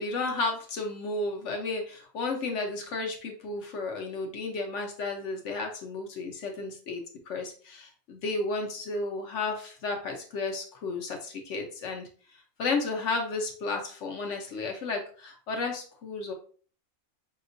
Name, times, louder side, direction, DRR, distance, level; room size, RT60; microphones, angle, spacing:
voice 1, 0.0-12.1 12.6-16.3, left 3 dB, 65° left, 3 dB, 1.1 m, -33 dB
5.2 x 2.9 x 2.6 m, 0.43 s
omnidirectional pair, 1.4 m